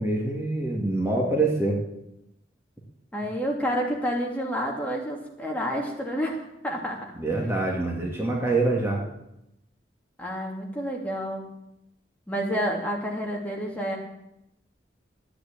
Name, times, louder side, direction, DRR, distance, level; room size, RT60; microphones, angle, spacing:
voice 1, 0.0-1.8 7.2-9.0, right 2 dB, 15° right, -1 dB, 2.3 m, -25 dB
voice 2, 3.1-7.1 10.2-11.4 12.3-14.0, equal, 10° left, -1 dB, 2.5 m, -29 dB
14.0 x 10.0 x 8.8 m, 0.85 s
head